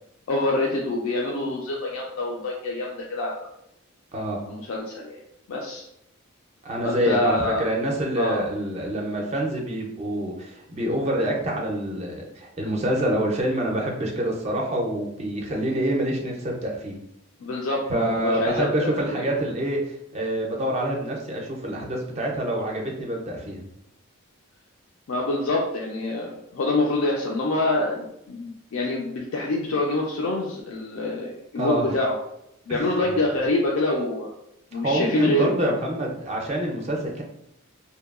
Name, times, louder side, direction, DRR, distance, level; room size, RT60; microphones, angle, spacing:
voice 1, 0.3-3.5 4.5-5.2 5.5-5.9 6.8-7.7 8.2-8.4 17.4-19.3 25.1-32.1 32.7-34.3 34.7-35.6, left 2 dB, 70° left, -2 dB, 0.4 m, -26 dB
voice 2, 4.1-4.4 6.6-17.0 17.9-23.7 31.6-31.9 32.7-33.2 34.7-37.2, right 1 dB, 30° right, -1 dB, 0.4 m, -26 dB
2.7 x 2.2 x 2.3 m, 0.79 s
head